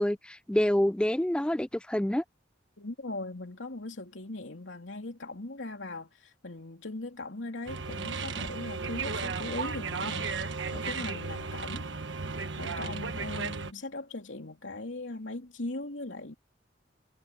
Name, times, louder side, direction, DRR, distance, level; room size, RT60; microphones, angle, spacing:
voice 1, 0.0-2.2, left 1 dB, 5° left, 0.4 m, -27 dB
voice 2, 2.8-11.9 12.6-16.3, left 2 dB, 80° left, 3.0 m, -39 dB
sound 1, 7.7-13.7, right 4 dB, 70° right, 1.4 m, -34 dB
head